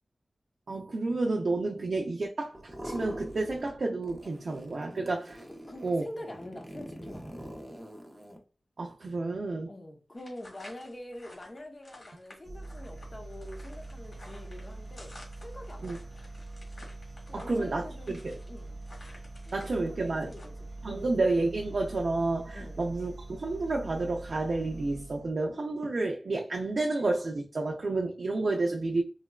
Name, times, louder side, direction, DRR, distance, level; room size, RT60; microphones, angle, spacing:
voice 1, 0.7-5.4 5.8-6.0 8.8-9.7 15.8-16.0 17.3-18.4 19.5-20.3 20.8-29.0, right 2 dB, 70° right, 0.4 m, -30 dB
sound 1, 2.5-3.8 4.0-8.4, equal, 15° right, 0.6 m, -44 dB
voice 2, 5.7-7.5 9.7-16.1 17.3-18.2 18.5-18.9 19.5-21.1 22.5-22.8 28.7-28.8, left 1 dB, 30° left, 0.8 m, -45 dB
sound 2, 10.1-19.8 20.1-20.5, left 1 dB, 55° left, 1.6 m, -52 dB
sound 3, 12.4-25.4, right 2 dB, 35° right, 0.9 m, -44 dB
3.9 x 2.2 x 2.3 m
wide cardioid pair, 95°, 0 cm